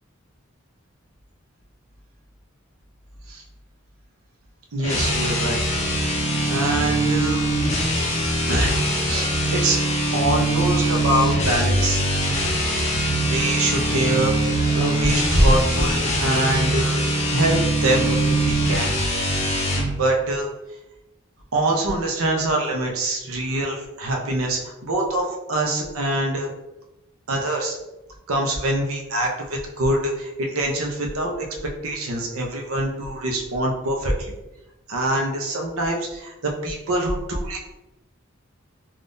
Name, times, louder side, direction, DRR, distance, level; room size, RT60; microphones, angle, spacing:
voice 1, 4.7-5.6 6.4-7.5 8.5-8.7 9.0-9.8 10.1-12.0 13.0-17.0 17.3-18.9 20.0-20.5 21.5-26.5 27.3-27.8 28.3-31.5 31.8-34.3 34.9-37.6, right 1 dB, 85° right, 1 dB, 0.6 m, -24 dB
sound 1, 4.8-19.9, right 1 dB, 35° left, 0.5 m, -22 dB
3.5 x 2.4 x 2.6 m, 0.97 s
head